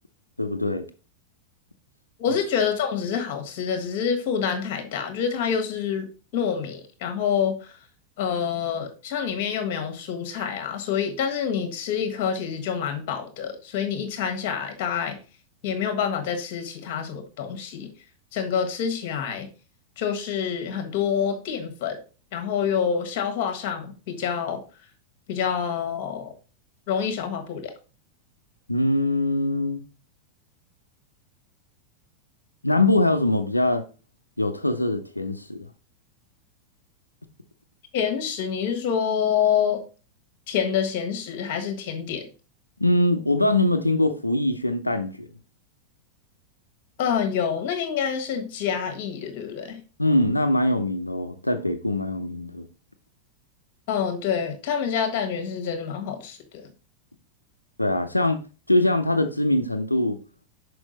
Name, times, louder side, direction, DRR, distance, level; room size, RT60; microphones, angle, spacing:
voice 1, 0.4-0.8 28.7-29.8 32.6-33.8 34.4-35.7 42.8-45.3 50.0-52.7 57.8-58.4 58.7-60.2, left 1 dB, 85° left, 0.5 m, -22 dB
voice 2, 2.2-7.8 8.2-15.2 15.6-17.9 18.3-19.5 20.0-22.0 22.3-24.6 25.3-26.3 26.9-27.7 37.9-39.8 40.5-42.3 47.0-49.8 53.9-56.7, left 7 dB, 45° left, 1.4 m, -27 dB
6.1 x 4.7 x 4.0 m
figure-of-eight pair, 90°, 0 cm